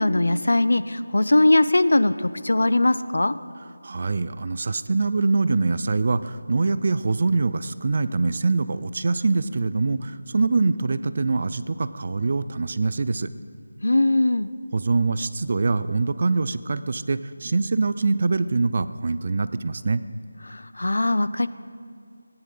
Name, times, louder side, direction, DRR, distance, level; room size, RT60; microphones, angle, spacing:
voice 1, 0.0-3.3 13.8-14.5 20.5-21.5, left 2 dB, 75° left, 14 dB, 0.5 m, -20 dB
voice 2, 3.8-13.3 14.7-20.0, right 3 dB, 40° right, 14 dB, 0.4 m, -24 dB
18.5 x 9.8 x 3.8 m, 2.2 s
figure-of-eight pair, 170°, 0 cm